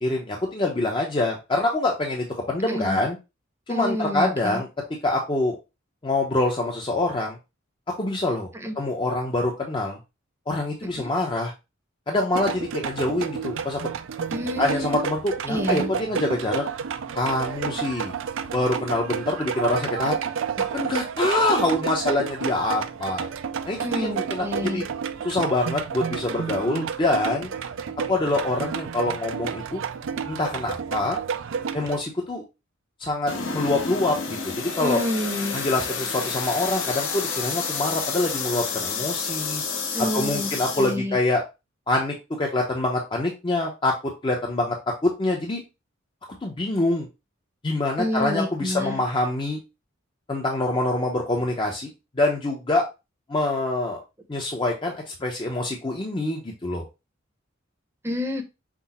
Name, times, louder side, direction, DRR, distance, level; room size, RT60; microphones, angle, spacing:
voice 1, 0.0-3.2 3.7-4.7 5.0-5.6 6.0-7.4 8.0-8.5 8.8-10.0 10.5-11.5 12.1-13.8 14.6-16.7 17.1-18.1 18.5-20.2 20.7-23.3 23.7-24.9 25.2-27.5 28.1-29.8 30.3-31.2 31.7-32.4 33.0-35.0 35.5-39.6 40.0-41.4 41.9-44.8 45.0-45.6 46.4-47.1 47.6-49.6 50.3-52.8 53.3-54.0 54.3-56.8, left 2 dB, 25° left, 0 dB, 0.6 m, -25 dB
voice 2, 2.7-3.0 3.7-4.6 8.6-8.7 11.0-11.1 14.3-14.9 15.5-15.9 23.8-24.8 34.8-35.6 39.9-40.5 40.8-41.2 48.0-49.0 58.0-58.4, left 1 dB, 15° right, 5 dB, 0.7 m, -28 dB
sound 1, 12.3-32.0, right 6 dB, 70° right, 0.4 m, -30 dB
sound 2, 33.3-41.0, left 5 dB, 70° left, 0.9 m, -30 dB
5.9 x 2.0 x 4.1 m, 0.26 s
head